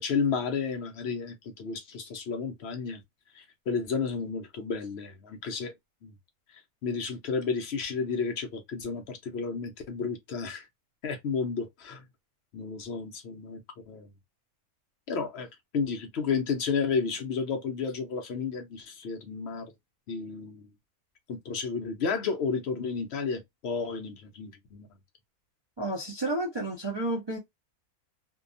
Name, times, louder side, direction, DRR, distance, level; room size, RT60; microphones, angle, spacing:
voice 1, 0.0-3.0 3.3-5.7 6.0-6.1 6.5-10.7 11.0-12.0 12.5-13.6 13.9-14.1 15.1-15.5 15.7-19.7 20.1-20.7 21.3-24.9, left 5 dB, 60° left, 0.7 m, -32 dB
voice 2, 25.8-27.4, right 2 dB, 35° right, 0.4 m, -31 dB
2.7 x 2.3 x 2.4 m
omnidirectional pair, 1.6 m